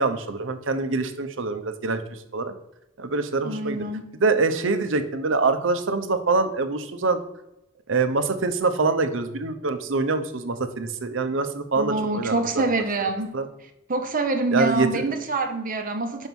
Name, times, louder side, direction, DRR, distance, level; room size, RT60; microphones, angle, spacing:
voice 1, 0.0-2.5 3.0-3.8 4.2-7.2 7.9-12.7 13.3-13.5 14.5-15.0, right 3 dB, 75° right, 0.8 m, -25 dB
voice 2, 3.4-4.0 11.8-13.3 13.9-16.3, right 3 dB, 45° right, 0.8 m, -25 dB
5.5 x 5.4 x 6.1 m
head